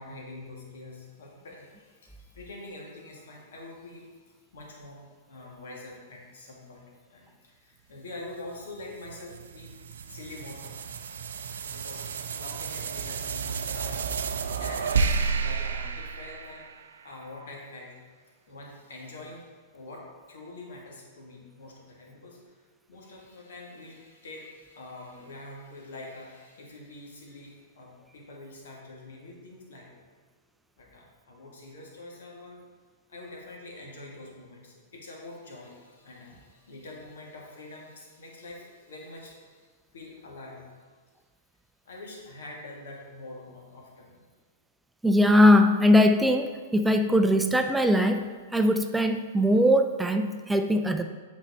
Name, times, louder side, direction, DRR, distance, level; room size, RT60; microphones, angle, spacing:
voice 1, 0.0-9.7 10.1-11.2 11.5-16.7 17.0-18.0 18.5-30.0 30.8-32.6 33.1-40.9 41.9-44.2, left 2 dB, 70° left, -2 dB, 1.8 m, -45 dB
sound 1, 8.5-17.1, right 5 dB, 75° right, 0.4 m, -31 dB
voice 2, 45.0-51.0, left 1 dB, 5° right, 6 dB, 0.4 m, -21 dB
7.9 x 4.5 x 4.1 m, 1.5 s
hypercardioid pair, 110°, 0 cm